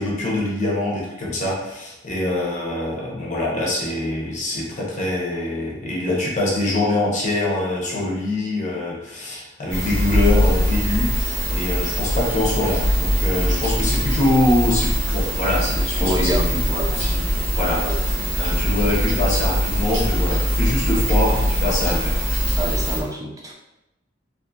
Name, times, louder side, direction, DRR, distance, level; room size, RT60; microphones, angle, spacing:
voice 1, 0.0-16.6 16.9-17.3 17.6-17.8 18.4-22.2, left 1 dB, 40° left, -4 dB, 0.7 m, -24 dB
sound 1, 9.7-23.0, equal, 85° right, 1.2 m, -22 dB
voice 2, 16.0-16.9 17.8-18.4 22.6-23.5, right 1 dB, 15° right, -1 dB, 0.4 m, -28 dB
2.6 x 2.4 x 2.6 m, 0.91 s
head